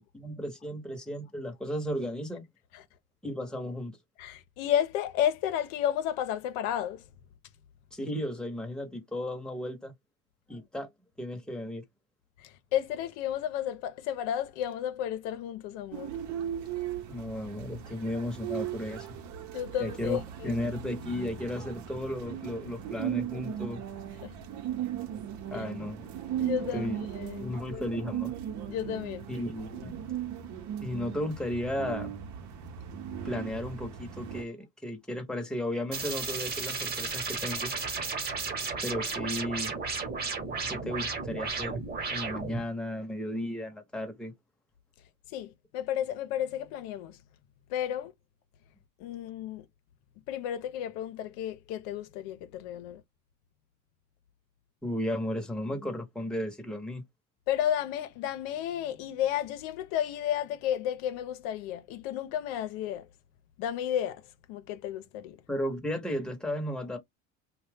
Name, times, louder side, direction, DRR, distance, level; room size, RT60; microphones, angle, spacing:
voice 1, 0.0-2.4 3.2-4.0 7.9-9.9 10.5-10.9 11.2-11.8 17.1-19.1 19.8-23.8 25.5-26.1 26.7-27.1 27.4-28.3 29.3-30.0 30.8-32.1 33.2-34.6 34.8-37.7 38.8-39.7 40.7-41.8 42.1-44.3 54.8-57.0 65.5-67.0, left 1 dB, ahead, 0.9 m, -34 dB
voice 2, 4.2-7.0 12.4-16.1 19.4-20.6 24.2-24.3 26.4-27.8 28.7-29.3 45.3-47.2 47.7-48.1 49.0-49.7 50.3-53.0 57.5-63.1 63.6-64.2 64.5-65.4, left 10 dB, 80° left, 0.8 m, -32 dB
sound 1, 15.9-34.4, right 10 dB, 55° right, 0.9 m, -37 dB
sound 2, 35.9-42.6, right 4 dB, 30° right, 1.2 m, -34 dB
2.7 x 2.3 x 3.4 m
supercardioid pair, 115°, 33 cm